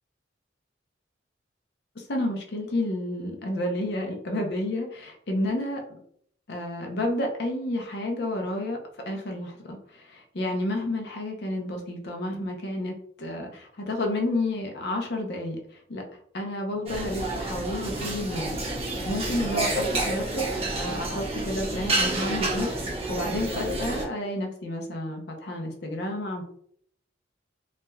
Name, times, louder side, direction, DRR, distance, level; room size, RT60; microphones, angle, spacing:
voice 1, 2.0-5.8 6.5-8.8 9.1-16.0 16.3-26.4, left 1 dB, 55° left, 2 dB, 0.6 m, -31 dB
sound 1, 16.9-24.1, right 2 dB, 30° right, 0.6 m, -29 dB
3.0 x 2.4 x 2.2 m, 0.65 s
head